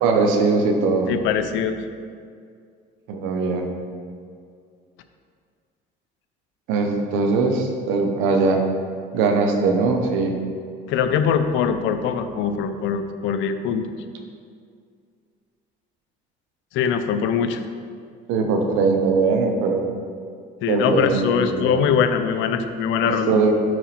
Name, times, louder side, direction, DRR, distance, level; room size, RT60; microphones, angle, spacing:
voice 1, 0.0-1.1 3.1-3.7 6.7-8.6 9.1-10.3 18.3-19.9 20.7-21.8 23.0-23.5, right 4 dB, 85° right, 3 dB, 0.9 m, -20 dB
voice 2, 1.1-1.8 10.9-13.9 16.7-17.6 20.6-23.4, left 7 dB, 75° left, 9 dB, 0.5 m, -22 dB
5.0 x 4.7 x 5.8 m, 2.2 s
cardioid pair, 100°, 20 cm